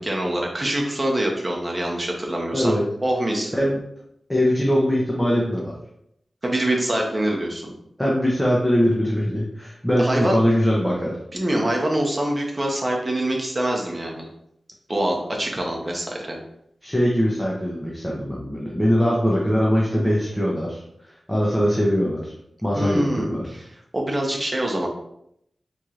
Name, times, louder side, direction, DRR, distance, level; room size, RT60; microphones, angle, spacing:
voice 1, 0.0-3.5 6.4-7.7 10.0-10.4 11.3-14.3 14.9-16.4 22.8-23.3 23.9-24.9, right 1 dB, 25° right, -1 dB, 0.9 m, -24 dB
voice 2, 2.5-2.9 3.5-3.8 4.3-5.7 8.0-11.2 16.8-20.8 21.3-22.3 22.6-23.4, equal, 5° left, -4 dB, 0.7 m, -21 dB
4.3 x 3.1 x 2.4 m, 0.75 s
wide cardioid pair, 90°, 0 cm